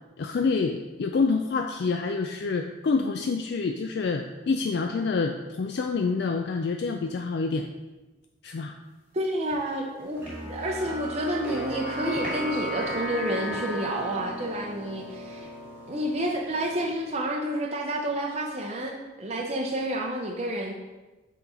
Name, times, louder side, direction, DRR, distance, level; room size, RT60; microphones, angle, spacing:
voice 1, 0.2-7.7 8.4-8.7, left 4 dB, 55° left, 4 dB, 0.3 m, -27 dB
sound 1, 9.0-9.2 9.5-11.2 11.4-11.8 12.1-14.0, equal, 10° left, 2.1 m, -44 dB
voice 2, 9.1-15.5 15.9-20.7, right 1 dB, 30° right, 0 dB, 0.6 m, -30 dB
sound 2, 10.2-17.1, right 1 dB, 10° right, 1.0 m, -35 dB
6.9 x 4.0 x 4.2 m, 1.1 s
head